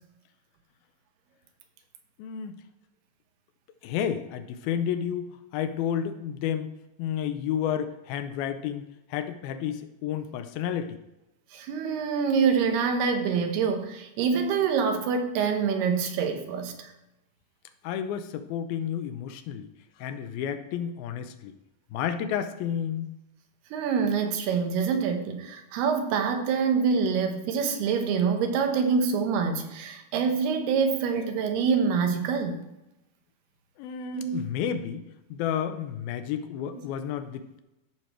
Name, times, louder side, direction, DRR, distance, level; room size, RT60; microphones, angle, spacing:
voice 1, 2.2-2.6 3.8-6.7 7.0-11.0 17.8-19.7 20.0-21.5 21.9-23.1 33.8-35.0 35.3-37.6, left 9 dB, 80° left, 10 dB, 2.4 m, -31 dB
voice 2, 11.5-16.9 23.7-32.6 34.1-34.4 36.7-36.8, right 6 dB, 90° right, 5 dB, 3.2 m, -26 dB
14.0 x 6.4 x 4.4 m, 0.90 s
omnidirectional pair, 4.5 m